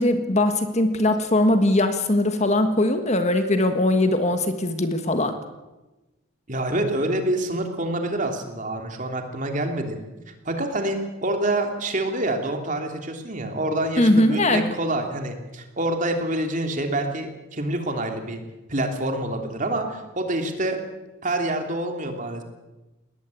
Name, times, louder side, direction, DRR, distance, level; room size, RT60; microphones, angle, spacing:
voice 1, 0.0-5.4 14.0-14.7, left 1 dB, 30° left, 8 dB, 1.5 m, -20 dB
voice 2, 6.5-10.0 10.4-18.4 18.7-20.8 21.2-22.4, right 1 dB, 35° right, 4 dB, 3.1 m, -27 dB
20.5 x 19.0 x 8.4 m, 1.1 s
head